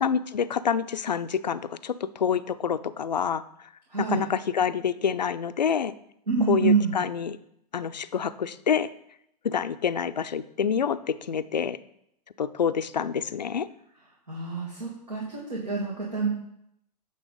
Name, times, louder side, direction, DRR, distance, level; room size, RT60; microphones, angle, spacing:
voice 1, 0.0-3.4 4.0-5.9 6.5-7.4 7.7-8.9 9.4-11.8 12.4-13.7, left 7 dB, 85° left, 14 dB, 0.4 m, -27 dB
voice 2, 3.9-4.2 6.3-6.9 14.3-16.3, right 5 dB, 85° right, -4 dB, 1.9 m, -26 dB
8.6 x 3.5 x 5.1 m, 0.74 s
figure-of-eight pair, 110°, 21 cm